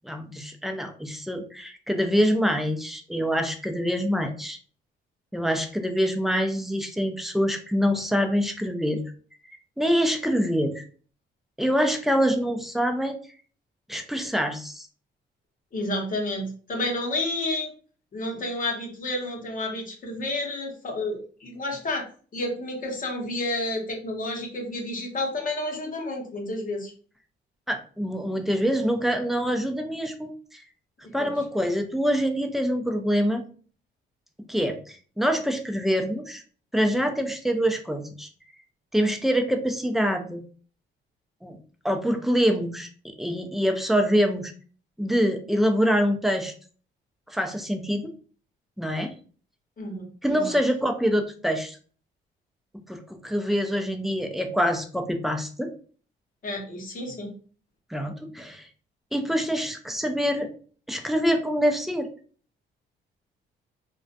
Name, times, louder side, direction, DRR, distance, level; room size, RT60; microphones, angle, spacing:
voice 1, 0.0-4.6 5.3-9.0 9.8-10.8 11.6-13.2 13.9-14.9 27.7-30.6 31.1-33.4 34.5-36.4 36.7-38.3 38.9-40.4 41.4-41.6 41.8-42.9 43.2-44.5 45.0-46.5 47.3-48.1 48.8-49.1 50.2-51.8 52.7-55.7 57.9-58.7 59.1-60.5 60.9-62.1, equal, ahead, 5 dB, 0.4 m, -25 dB
voice 2, 15.7-17.7 18.1-22.1 22.3-26.9 31.0-31.3 49.8-50.6 56.4-57.3, left 2 dB, 45° left, 1 dB, 0.8 m, -30 dB
2.4 x 2.2 x 2.5 m, 0.42 s
cardioid pair, 90°, 20 cm